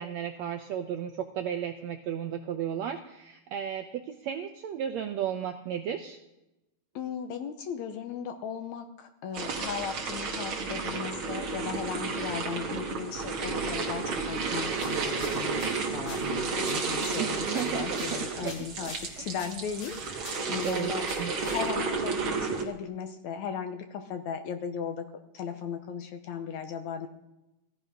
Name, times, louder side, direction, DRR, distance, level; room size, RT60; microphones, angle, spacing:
voice 1, 0.0-6.2 17.2-18.9 19.2-19.3 20.5-21.5, right 9 dB, 80° right, 5 dB, 1.5 m, -34 dB
voice 2, 7.0-21.0 21.4-25.1 25.3-27.1, left 7 dB, 70° left, 7 dB, 1.9 m, -37 dB
sound 1, 9.3-22.6, right 4 dB, 45° right, 2.0 m, -32 dB
sound 2, 14.7-22.0, left 3 dB, 50° left, 3.0 m, -48 dB
16.0 x 12.0 x 5.2 m, 0.93 s
omnidirectional pair, 3.9 m